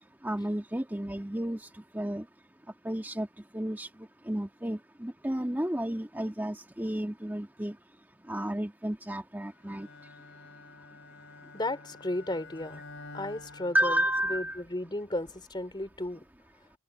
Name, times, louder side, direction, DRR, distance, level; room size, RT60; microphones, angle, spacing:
voice 1, 0.2-1.6 1.9-2.3 2.8-3.3 3.5-3.9 4.3-7.8 8.3-9.9 13.7-14.6, right 1 dB, 10° right, 1.9 m, -31 dB
Bowed string instrument, 9.6-14.6, left 2 dB, 65° left, 5.1 m, -49 dB
voice 2, 11.5-12.8 13.1-14.0 14.3-16.2, left 1 dB, 20° left, 3.2 m, -34 dB
head